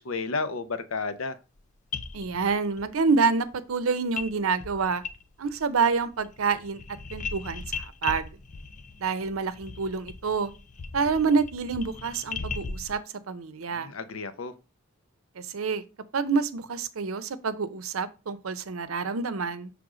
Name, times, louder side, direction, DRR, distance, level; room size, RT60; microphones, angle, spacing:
voice 1, 0.0-1.4 13.7-14.5, left 4 dB, 75° left, 0.7 m, -32 dB
sound 1, 1.6-1.7 1.9-2.9 4.2-4.3 4.6-5.6 5.9-12.9, left 4 dB, 35° left, 0.5 m, -38 dB
voice 2, 2.1-5.0 5.4-6.8 7.1-8.3 9.0-10.5 10.9-13.0 13.3-13.9 15.4-15.8 16.1-19.7, right 5 dB, 85° right, 0.6 m, -27 dB
6.2 x 3.4 x 4.9 m
head